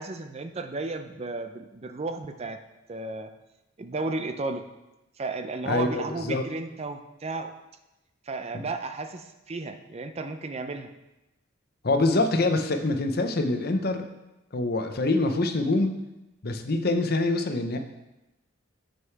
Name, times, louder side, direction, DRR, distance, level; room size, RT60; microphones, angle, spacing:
voice 1, 0.0-2.6 2.9-3.3 3.8-4.6 5.2-7.5 8.3-10.9, right 3 dB, 30° right, 8 dB, 0.5 m, -33 dB
voice 2, 5.7-6.5 8.5-8.6 11.8-14.0 14.5-16.0 16.4-17.8, left 2 dB, 50° left, 7 dB, 0.7 m, -25 dB
7.7 x 6.4 x 4.6 m, 0.97 s
head